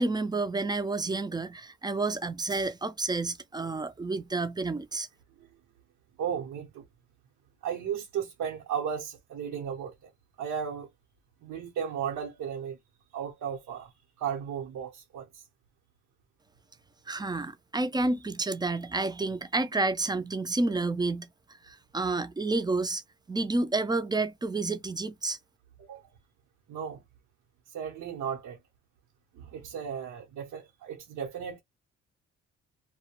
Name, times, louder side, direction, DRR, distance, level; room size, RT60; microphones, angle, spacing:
voice 1, 0.0-5.1 17.1-21.3 21.6-23.0 23.3-25.4, right 3 dB, 15° right, 0.4 m, -30 dB
voice 2, 6.2-6.8 7.6-10.1 10.4-10.9 11.4-12.8 13.1-13.9 14.2-15.4 25.8-26.0 26.7-27.0 27.7-28.6 29.4-31.6, right 8 dB, 75° right, 0.8 m, -35 dB
2.2 x 2.1 x 2.9 m
cardioid pair, 90°, 30 cm